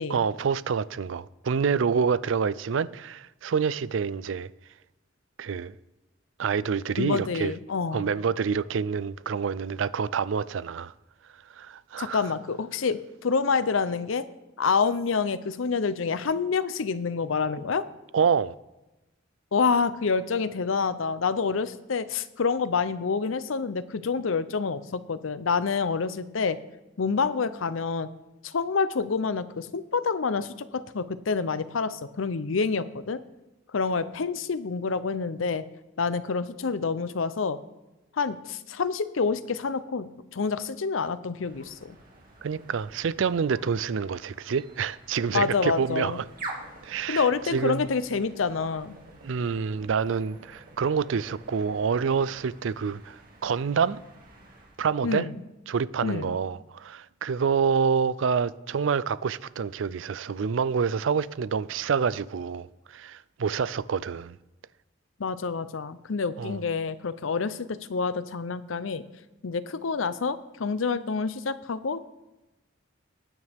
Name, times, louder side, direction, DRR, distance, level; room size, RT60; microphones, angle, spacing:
voice 1, 0.1-4.5 5.4-5.7 6.4-7.5 7.9-10.9 11.6-12.3 18.1-18.5 42.4-46.3 46.8-47.3 47.5-47.9 49.2-53.2 53.4-54.0 54.8-55.3 55.7-64.4 66.4-66.6, right 6 dB, 70° right, 0.4 m, -27 dB
voice 2, 7.0-8.1 12.0-14.3 14.6-17.8 19.5-26.6 27.0-28.1 28.4-33.2 33.7-35.7 36.0-37.6 38.2-42.0 45.3-46.2 47.1-49.0 55.0-55.4 56.0-56.3 65.2-69.0 69.4-72.0, left 5 dB, 85° left, 0.6 m, -27 dB
sound 1, 41.4-54.8, right 2 dB, 45° right, 2.2 m, -47 dB
19.5 x 9.6 x 3.6 m
head